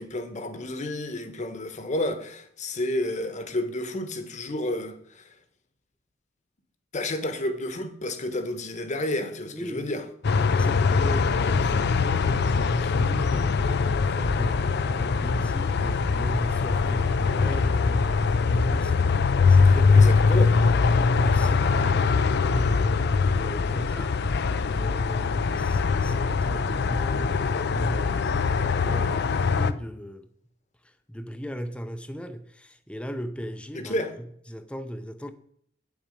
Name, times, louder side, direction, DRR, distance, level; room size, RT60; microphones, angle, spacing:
voice 1, 0.0-5.3 6.9-10.0 19.6-20.6 33.7-34.1, left 1 dB, 40° left, 1.1 m, -31 dB
voice 2, 9.5-9.9 10.4-14.6 14.9-20.1 20.5-22.9 23.3-24.2 24.7-30.3 31.1-34.0 34.5-35.3, equal, 5° left, 0.6 m, -36 dB
sound 1, 10.2-29.7, left 4 dB, 60° left, 0.5 m, -22 dB
8.8 x 7.3 x 5.2 m
head